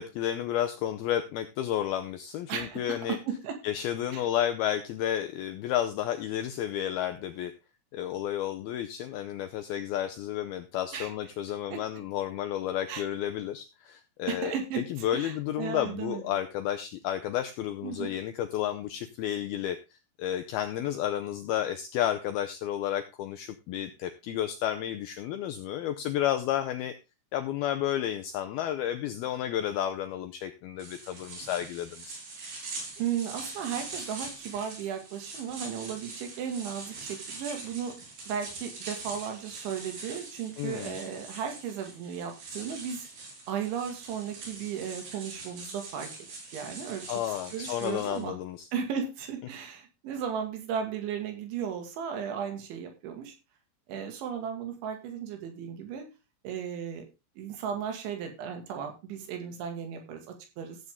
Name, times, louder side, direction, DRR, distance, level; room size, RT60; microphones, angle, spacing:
voice 1, 0.0-3.2 3.6-7.5 7.9-27.0 27.3-32.2 40.6-41.0 47.1-48.7, left 11 dB, 85° left, 8 dB, 2.2 m, -31 dB
voice 2, 2.5-2.8 3.1-3.6 4.1-4.2 10.9-11.1 11.7-11.8 12.9-13.0 14.3-14.8 15.1-16.4 17.8-18.1 33.0-38.0 38.3-43.1 43.5-46.1 46.5-47.1 47.5-48.4 48.7-53.3 53.9-56.1 56.4-57.1 57.4-60.8, right 8 dB, 80° right, 5 dB, 4.4 m, -35 dB
sound 1, 30.8-48.2, right 3 dB, 60° right, 6.3 m, -43 dB
15.0 x 8.0 x 3.6 m, 0.28 s
omnidirectional pair, 5.3 m